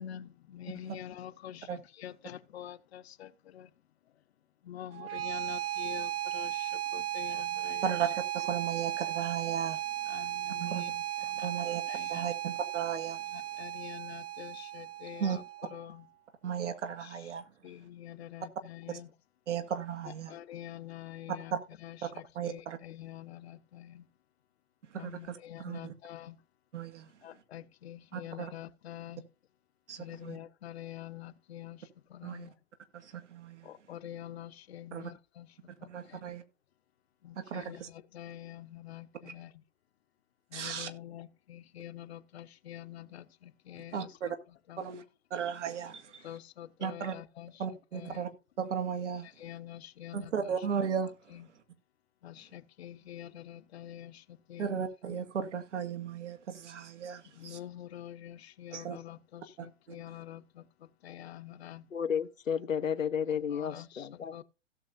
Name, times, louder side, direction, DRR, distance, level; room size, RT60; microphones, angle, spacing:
voice 1, 0.0-3.7 4.6-7.9 10.1-12.3 13.3-15.4 15.7-16.1 17.0-17.3 17.6-19.1 20.1-24.1 24.9-26.4 27.2-29.3 30.0-32.5 33.6-36.2 37.2-39.5 40.5-44.8 46.2-48.3 49.2-50.6 51.3-51.5 52.2-55.2 57.3-61.9 63.5-64.4, left 12 dB, 55° left, 0.9 m, -46 dB
sound 1, 4.9-15.9, right 13 dB, 25° right, 1.0 m, -36 dB
voice 2, 7.8-10.2 10.6-10.8 11.4-11.8 12.1-13.2 15.2-15.4 16.4-17.4 19.5-20.4 21.5-21.6 22.4-22.8 24.9-25.9 26.7-27.1 28.1-28.5 29.9-30.4 32.2-32.5 32.9-33.7 34.9-35.1 35.9-36.4 37.4-37.9 40.5-40.9 43.9-44.4 44.8-45.0 45.3-46.3 46.8-47.1 47.6-48.3 48.6-49.3 50.1-51.4 54.6-57.6 58.7-59.0 59.6-60.0, right 7 dB, 65° right, 1.9 m, -35 dB
voice 3, 61.9-64.4, left 7 dB, 90° left, 0.9 m, -32 dB
16.5 x 6.9 x 2.6 m
hypercardioid pair, 125°, 38 cm